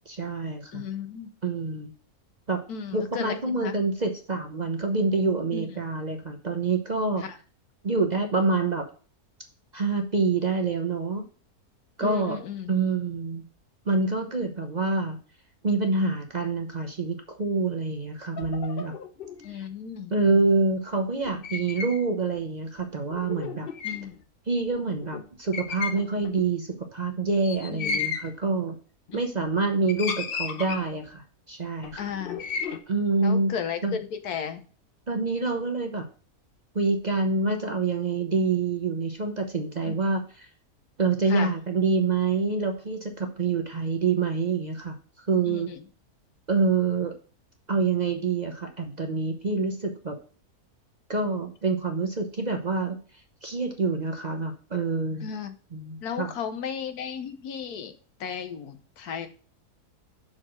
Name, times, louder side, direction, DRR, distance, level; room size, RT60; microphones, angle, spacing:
voice 1, 0.0-0.8 1.4-1.9 2.5-2.6 2.9-7.3 7.8-8.9 9.7-11.3 12.0-12.4 12.7-13.4 13.8-15.2 15.6-18.9 19.5-19.7 20.1-23.7 24.5-28.7 29.1-31.2 31.5-32.0 32.9-33.5 33.8-34.0 35.1-36.1 36.7-40.2 41.0-45.7 46.5-47.1 47.7-50.1 51.1-53.0 53.4-55.3 55.7-56.3, right 3 dB, 35° right, 4 dB, 0.8 m, -26 dB
voice 2, 0.7-1.3 2.7-3.8 5.5-5.8 7.2-7.3 12.0-12.8 19.4-20.1 23.8-24.2 27.7-28.1 29.1-29.2 32.0-32.4 33.2-34.6 39.8-39.9 41.3-41.5 45.5-45.8 55.2-55.5 56.0-57.9 58.2-59.3, left 7 dB, 85° left, 9 dB, 1.4 m, -35 dB
sound 1, 18.4-19.5 21.2-22.0 22.3-22.4 23.1-24.2 24.7-24.8 25.0-25.2 25.5-26.4 27.4-28.3 29.1-29.5 29.9-31.1 31.8-32.8, left 5 dB, 50° left, 0.8 m, -34 dB
6.0 x 4.6 x 6.2 m, 0.39 s
omnidirectional pair, 1.6 m